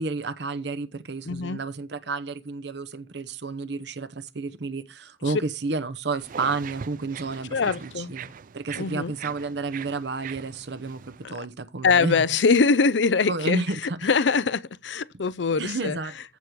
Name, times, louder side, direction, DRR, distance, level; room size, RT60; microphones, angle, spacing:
voice 1, 0.0-8.3 8.5-12.4 13.3-14.1 15.6-16.1, right 3 dB, 70° right, 0.9 m, -31 dB
voice 2, 1.3-1.6 7.5-8.1 8.8-9.1 11.8-13.6 14.0-16.0, left 4 dB, 90° left, 0.6 m, -23 dB
sound 1, 6.2-11.3, right 7 dB, 50° right, 0.4 m, -41 dB
14.5 x 5.2 x 4.6 m
head